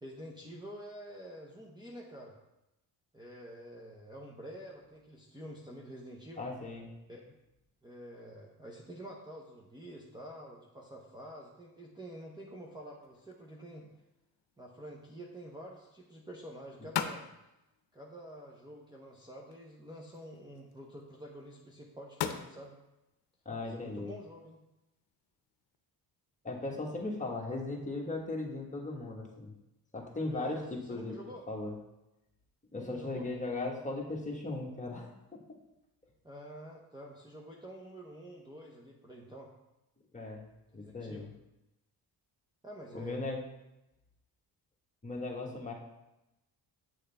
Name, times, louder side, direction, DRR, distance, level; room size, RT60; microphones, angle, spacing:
voice 1, 0.0-2.4 3.1-6.4 7.1-7.2 7.8-13.9 14.6-17.3 17.9-22.8 23.6-24.6 30.3-31.4 32.8-33.3 36.2-39.5 40.8-41.3 42.6-43.2, equal, 10° right, -2 dB, 0.8 m, -48 dB
voice 2, 6.4-6.9 23.4-24.1 26.4-29.5 29.9-31.2 31.5-31.7 32.7-35.4 40.1-40.5 40.7-41.2 42.9-43.4 45.0-45.7, left 2 dB, 20° left, -1 dB, 1.4 m, -37 dB
sound 1, 13.0-25.8, left 9 dB, 85° left, 0.7 m, -45 dB
8.8 x 6.3 x 3.4 m, 0.93 s
cardioid pair, 135°, 41 cm